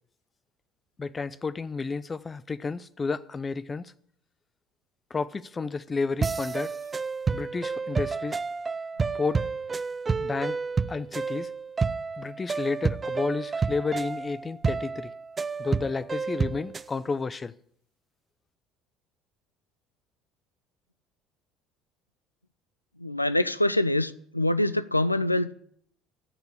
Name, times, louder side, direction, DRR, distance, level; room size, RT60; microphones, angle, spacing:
voice 1, 1.0-3.9 5.1-6.7 7.3-8.4 9.1-9.5 10.2-10.6 10.9-11.5 12.2-15.1 15.6-17.5, left 4 dB, 25° left, 0.7 m, -31 dB
sound 1, 6.2-16.9, right 4 dB, 25° right, 0.5 m, -30 dB
voice 2, 23.0-25.5, left 1 dB, 90° left, 0.5 m, -25 dB
14.5 x 6.8 x 9.6 m
figure-of-eight pair, 60°, 0 cm